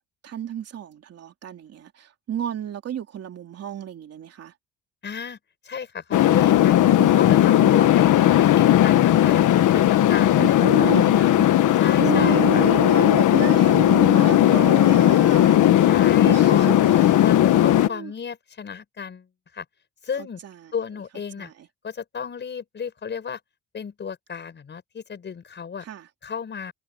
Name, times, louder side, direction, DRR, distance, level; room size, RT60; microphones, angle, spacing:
voice 1, 0.2-4.5 7.0-7.7 10.4-11.5 12.0-16.0 16.2-17.2 17.9-18.1 20.2-20.7 21.4-21.7 25.8-26.1, right 9 dB, 50° right, 3.1 m, -31 dB
voice 2, 5.0-5.4 5.6-6.9 7.2-8.1 8.3-11.3 11.8-12.7 15.9-16.8 17.2-19.3 19.5-19.6 20.0-20.4 20.7-21.5 21.8-23.4 23.7-25.8 26.2-26.7, left 6 dB, 35° left, 6.4 m, -33 dB
sound 1, 6.1-17.9, left 12 dB, 70° left, 1.4 m, -17 dB
cardioid pair, 170°, 31 cm